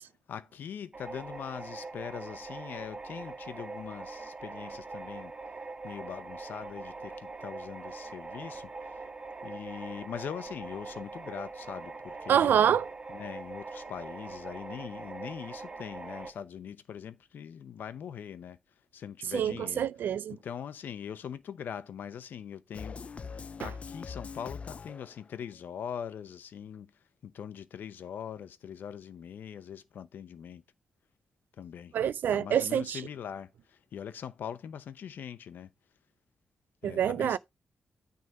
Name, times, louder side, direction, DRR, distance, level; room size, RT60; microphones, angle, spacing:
voice 1, 0.3-5.3 5.8-9.0 9.4-12.5 13.1-18.6 18.9-19.9 20.3-23.0 23.3-26.9 27.2-30.6 31.6-31.9 32.3-35.7 36.8-37.4, left 8 dB, 80° left, 0.7 m, -42 dB
sound 1, 0.9-16.3, right 3 dB, 30° right, 2.0 m, -42 dB
voice 2, 12.3-12.9 19.3-20.4 23.6-23.7 31.9-33.0 36.8-37.4, right 9 dB, 85° right, 0.4 m, -26 dB
sound 2, 22.7-25.4, left 5 dB, 40° left, 0.4 m, -42 dB
9.3 x 3.8 x 5.3 m
cardioid pair, 105°, 3 cm